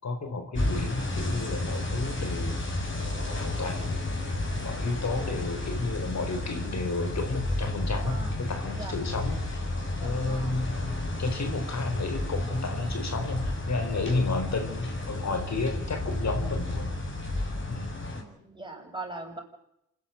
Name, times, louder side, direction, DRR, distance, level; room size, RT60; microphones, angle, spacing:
voice 1, 0.0-2.5 3.2-3.9 4.6-9.6 10.0-16.9 17.7-17.9, left 3 dB, 60° left, 6 dB, 4.7 m, -32 dB
sound 1, 0.5-18.2, left 1 dB, 40° left, 6.7 m, -32 dB
voice 2, 8.0-8.3 8.7-9.0 10.0-10.6 18.1-19.4, right 2 dB, 15° right, 1 dB, 7.9 m, -41 dB
27.0 x 11.5 x 9.2 m, 0.80 s
cardioid pair, 65°, 31 cm